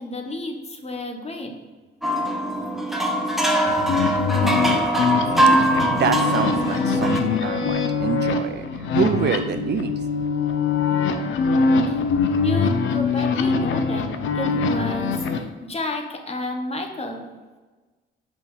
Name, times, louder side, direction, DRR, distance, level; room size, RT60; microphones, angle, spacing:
voice 1, 0.0-1.6 11.9-12.0 12.4-17.3, left 1 dB, 30° left, 4 dB, 1.4 m, -30 dB
sound 1, 2.0-7.2, right 1 dB, ahead, 1.0 m, -22 dB
sound 2, 3.7-15.4, left 5 dB, 75° left, 0.8 m, -23 dB
voice 2, 5.7-10.0, right 8 dB, 55° right, 9 dB, 0.5 m, -26 dB
6.2 x 5.4 x 6.3 m, 1.3 s
cardioid pair, 90°, 20 cm